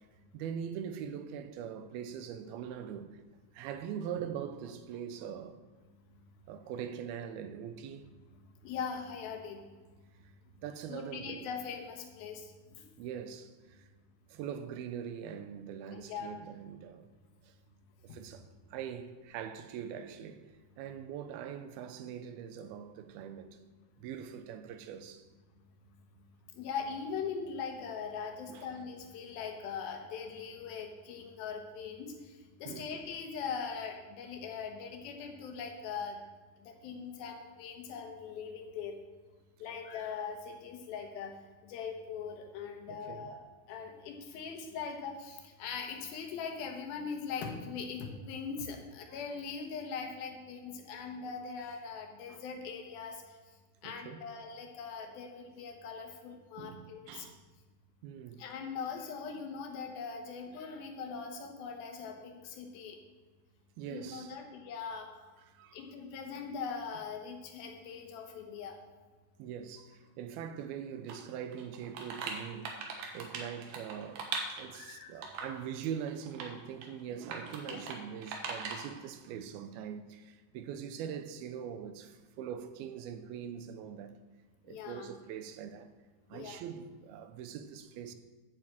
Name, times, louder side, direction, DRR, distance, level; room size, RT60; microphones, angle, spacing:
voice 1, 0.3-3.2 3.5-5.6 6.5-8.1 10.6-11.5 13.0-13.9 14.3-17.1 17.4-17.5 18.0-20.4 20.8-23.6 24.0-25.3 28.5-28.7 32.7-33.0 42.9-43.3 52.3-52.4 53.8-54.3 56.6-57.4 58.0-58.4 63.8-64.3 65.5-65.9 69.4-84.2 84.6-85.9 86.3-88.1, right 8 dB, 90° right, 2.6 m, -42 dB
voice 2, 8.3-9.7 10.9-12.9 15.9-16.4 18.1-18.2 26.5-36.2 36.6-39.0 39.6-41.4 41.6-53.4 53.8-57.3 58.4-63.0 63.9-65.1 65.7-68.8 74.7-75.1 77.7-77.9 84.7-85.1 86.3-86.6, left 6 dB, 80° left, 3.0 m, -41 dB
sound 1, 71.1-71.2 71.5-74.8 75.2-75.6 76.1-76.5 76.8-76.9 77.3-78.0 78.2-78.9, right 4 dB, 70° right, 2.8 m, -40 dB
9.0 x 7.8 x 7.5 m
omnidirectional pair, 4.3 m